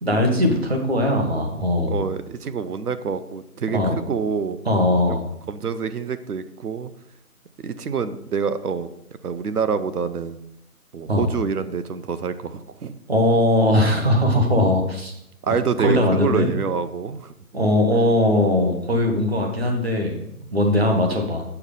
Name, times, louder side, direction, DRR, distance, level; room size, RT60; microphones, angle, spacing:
voice 1, 0.0-2.0 3.7-3.9 4.6-5.2 11.1-11.3 13.1-15.1 15.5-16.5 17.5-21.4, left 1 dB, 40° right, 2 dB, 1.4 m, -20 dB
voice 2, 1.9-4.6 5.5-6.9 7.6-8.9 9.2-10.4 10.9-12.9 15.4-17.3 20.8-21.1, right 6 dB, 80° right, 12 dB, 0.8 m, -26 dB
7.9 x 4.7 x 5.3 m, 0.79 s
hypercardioid pair, 180°, 45 cm